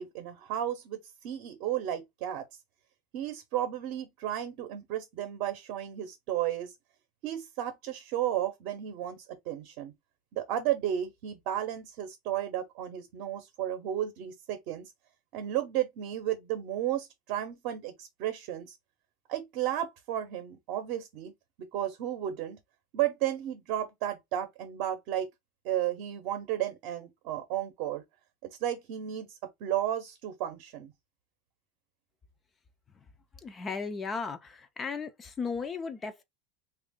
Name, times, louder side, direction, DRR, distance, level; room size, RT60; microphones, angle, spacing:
voice 1, 0.0-2.4 3.1-6.7 7.2-9.9 10.3-14.9 15.3-18.8 19.3-21.3 21.7-22.6 22.9-25.3 25.6-28.0 28.4-30.9, right 11 dB, 50° right, 0.7 m, -33 dB
voice 2, 33.4-36.2, left 5 dB, 20° left, 0.3 m, -36 dB
3.5 x 2.4 x 3.5 m
supercardioid pair, 160°, 0 cm